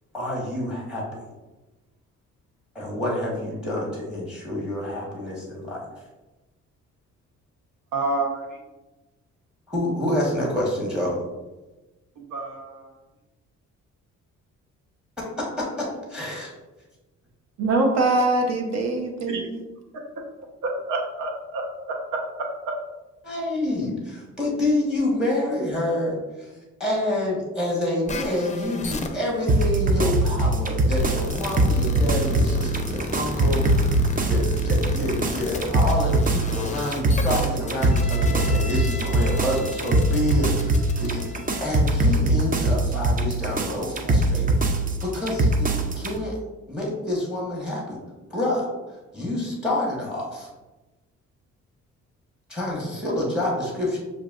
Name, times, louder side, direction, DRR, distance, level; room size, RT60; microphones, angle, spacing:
voice 1, 0.1-1.3 2.7-5.8 9.7-11.2 15.2-16.5 23.2-26.5 26.8-34.0 34.3-44.6 45.0-46.4 46.7-48.0 48.3-48.7 49.1-50.5 52.5-54.0, left 1 dB, 5° right, -4 dB, 1.3 m, -27 dB
voice 2, 7.9-8.4 12.2-12.9 19.3-19.5 20.6-21.6 21.9-22.5, right 2 dB, 85° right, 1 dB, 1.0 m, -29 dB
voice 3, 17.6-19.6, right 2 dB, 60° right, 2 dB, 1.0 m, -23 dB
sound 1, 28.1-41.7, left 2 dB, 25° left, 0.5 m, -34 dB
sound 2, 29.5-46.1, right 2 dB, 30° right, 0.5 m, -22 dB
6.7 x 2.6 x 2.5 m, 1.1 s
cardioid pair, 90°, 30 cm